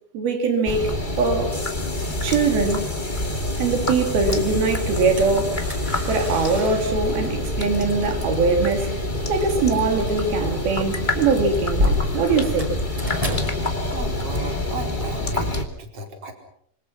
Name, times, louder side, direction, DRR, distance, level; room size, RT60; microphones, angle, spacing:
voice 1, 0.1-0.9 1.2-1.6 2.2-2.8 3.6-5.6 6.1-8.9 9.3-12.8, right 4 dB, 85° right, 4.7 m, -22 dB
sound 1, 0.6-15.6, left 1 dB, 15° left, 2.3 m, -26 dB
sound 2, 4.1-15.3, left 1 dB, 10° right, 5.1 m, -32 dB
voice 2, 13.9-16.3, right 2 dB, 40° right, 5.4 m, -35 dB
27.0 x 26.0 x 5.9 m
omnidirectional pair, 4.2 m